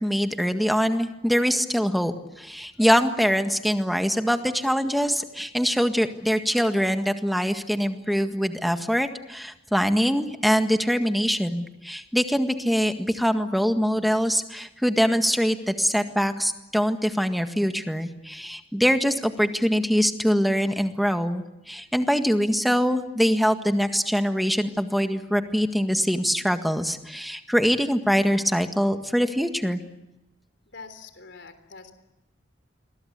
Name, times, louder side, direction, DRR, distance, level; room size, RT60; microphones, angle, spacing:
voice 1, 0.0-29.8, equal, ahead, 6 dB, 1.8 m, -23 dB
voice 2, 30.7-31.9, left 4 dB, 75° left, 9 dB, 3.5 m, -44 dB
28.5 x 22.5 x 8.3 m, 0.95 s
head